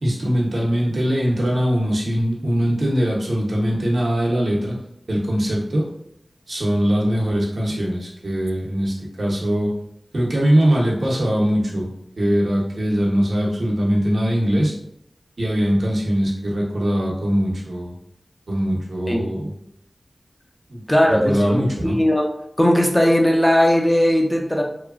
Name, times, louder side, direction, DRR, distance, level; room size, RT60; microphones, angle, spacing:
voice 1, 0.0-4.8 5.1-5.9 6.5-9.7 10.1-11.9 12.2-14.7 15.4-17.9 18.5-19.5 20.7-20.8 21.1-22.0, equal, 75° right, -3 dB, 0.8 m, -21 dB
voice 2, 20.9-22.3 22.6-24.6, equal, 15° left, 1 dB, 0.5 m, -18 dB
3.0 x 2.2 x 2.4 m, 0.73 s
cardioid pair, 45°, 0 cm